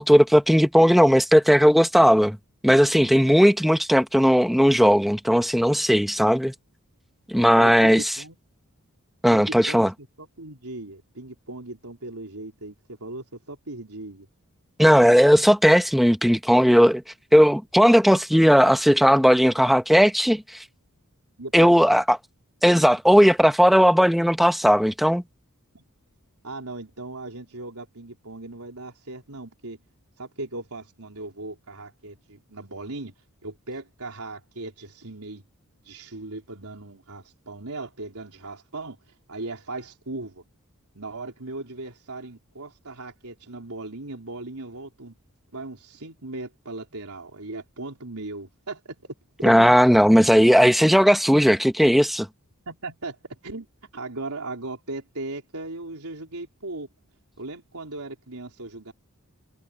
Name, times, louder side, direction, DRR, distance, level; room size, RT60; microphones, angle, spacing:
voice 1, 0.0-2.4 2.6-6.5 7.3-8.1 9.2-9.9 14.8-17.0 17.3-20.4 21.5-22.2 22.6-25.2 49.4-52.3, equal, ahead, 1.1 m, -17 dB
voice 2, 7.5-8.4 9.3-12.7 13.0-14.3 21.4-22.0 25.7-25.8 26.4-29.8 30.2-33.1 33.4-35.4 35.8-39.0 39.3-40.4 40.9-45.1 45.5-49.1 49.4-49.8 52.7-53.7 53.9-56.9 57.4-58.9, right 2 dB, 85° right, 4.1 m, -37 dB
head